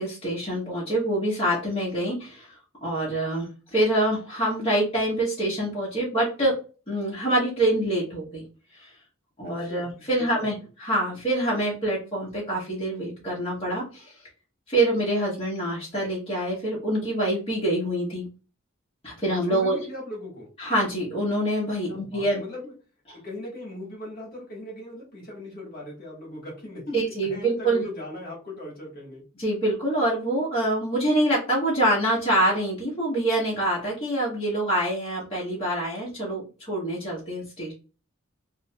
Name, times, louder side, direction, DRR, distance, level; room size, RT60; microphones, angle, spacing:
voice 1, 0.0-2.6 2.8-6.5 6.9-8.4 8.8-8.9 9.4-14.1 14.7-18.3 19.0-19.8 20.6-22.4 26.9-27.8 29.4-37.7, right 1 dB, 30° left, -6 dB, 1.3 m, -25 dB
voice 2, 9.4-10.6 19.5-20.5 21.9-22.7 23.1-29.2, left 1 dB, 50° left, -2 dB, 1.5 m, -39 dB
3.5 x 2.7 x 2.2 m, 0.34 s
head